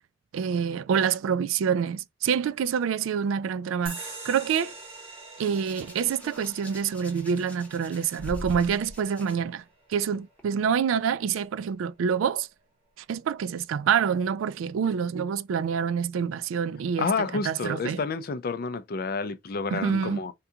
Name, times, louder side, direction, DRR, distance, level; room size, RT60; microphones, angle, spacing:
voice 1, 0.3-4.7 5.4-9.6 9.9-12.5 13.1-17.1 17.3-18.0 19.7-20.2, right 7 dB, 85° right, 0.3 m, -27 dB
sound 1, 3.9-10.9, right 3 dB, 30° right, 1.2 m, -45 dB
Hands, 5.4-9.4 10.4-10.6, left 1 dB, 5° left, 0.8 m, -42 dB
voice 2, 17.0-20.3, left 4 dB, 50° left, 0.4 m, -29 dB
3.7 x 2.3 x 2.8 m
head